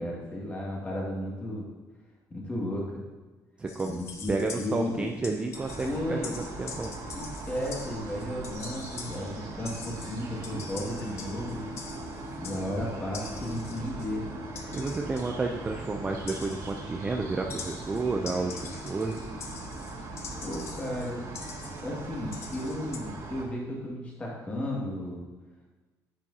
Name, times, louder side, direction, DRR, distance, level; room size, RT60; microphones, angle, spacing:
voice 1, 0.0-1.7 2.3-3.0 3.8-5.1 5.8-6.4 7.1-11.7 12.4-14.2 20.4-21.4 21.8-25.3, left 1 dB, 20° left, -3 dB, 2.1 m, -34 dB
voice 2, 3.6-4.0 4.3-7.0 14.7-19.2, right 3 dB, 15° right, 2 dB, 0.5 m, -31 dB
sound 1, 3.7-23.0, left 5 dB, 40° left, 0.9 m, -45 dB
sound 2, 5.5-23.4, right 2 dB, 65° right, 2.1 m, -40 dB
10.5 x 8.6 x 2.8 m, 1.3 s
cardioid pair, 170°, 7 cm